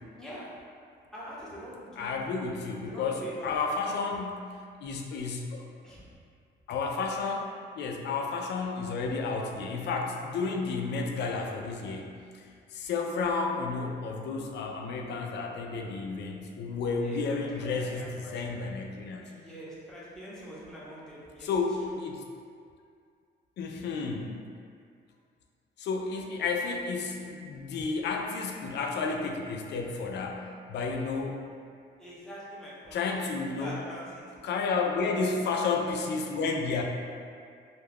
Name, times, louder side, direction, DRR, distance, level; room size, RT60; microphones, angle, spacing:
voice 1, 0.2-0.6 1.1-3.8 5.8-6.1 17.0-18.6 19.2-21.5 21.9-22.0 32.0-34.4, equal, 5° left, -8 dB, 0.8 m, -45 dB
voice 2, 2.0-4.5 4.8-5.7 6.7-7.5 7.8-19.3 21.4-22.2 23.6-24.3 25.8-31.4 32.9-33.8 34.4-36.8, left 4 dB, 60° left, 2 dB, 0.4 m, -32 dB
2.3 x 2.2 x 3.4 m, 2.2 s
cardioid pair, 90°, 20 cm